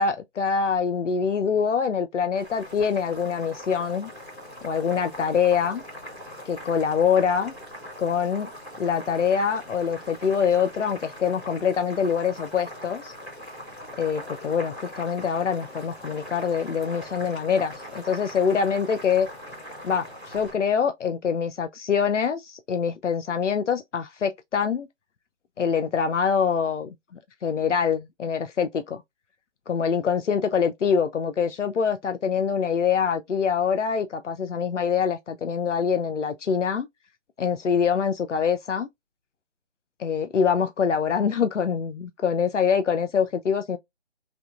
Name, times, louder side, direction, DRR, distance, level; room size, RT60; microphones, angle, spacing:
voice 1, 0.0-4.1 4.6-5.8 6.4-7.5 8.0-8.5 8.8-13.1 14.0-19.3 19.8-24.9 25.6-26.9 27.4-29.0 29.7-36.9 37.4-38.9 40.0-43.8, left 6 dB, 85° left, 0.5 m, -24 dB
Boiling, 2.3-20.5, equal, 5° left, 0.7 m, -41 dB
3.4 x 2.8 x 2.4 m
figure-of-eight pair, 155°, 35 cm